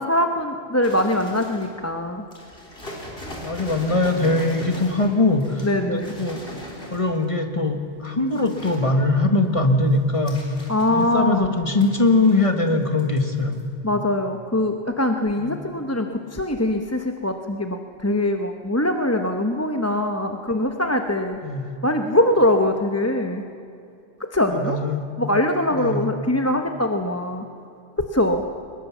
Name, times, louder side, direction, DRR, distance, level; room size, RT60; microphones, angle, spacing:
voice 1, 0.0-2.2 5.6-6.1 10.7-11.5 13.8-21.4 21.8-23.4 24.2-24.8 25.2-27.4 28.0-28.4, left 1 dB, 15° left, 5 dB, 0.9 m, -22 dB
sound 1, 0.8-1.8 2.3-7.3 7.9-8.8 9.3-11.3 11.8-12.7 13.0-13.2 13.5-13.6, left 1 dB, 55° left, 4.2 m, -39 dB
voice 2, 3.2-6.4 6.9-10.4 10.9-13.6 15.4-15.6 21.4-21.6 24.5-25.1 25.8-26.0, left 2 dB, 30° left, 5 dB, 1.7 m, -21 dB
22.5 x 21.0 x 7.2 m, 2.6 s
omnidirectional pair, 1.1 m